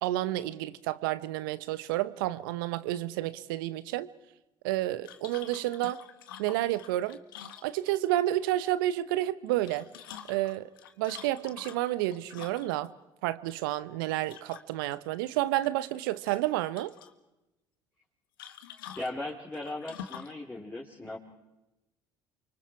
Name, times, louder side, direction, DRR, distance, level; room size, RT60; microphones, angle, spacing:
voice 1, 0.0-4.1 4.6-6.0 6.4-7.2 7.6-9.9 10.3-10.7 11.0-12.9 13.2-16.9, right 15 dB, 75° right, 0.9 m, -30 dB
sound 1, 5.0-8.2 9.5-12.9 14.2-14.9 15.3-16.0 16.2-17.1 18.4-20.4, left 9 dB, 80° left, 1.4 m, -47 dB
voice 2, 18.9-21.2, left 2 dB, 15° left, 4.1 m, -38 dB
29.0 x 25.0 x 4.7 m
hypercardioid pair, 60°, 11 cm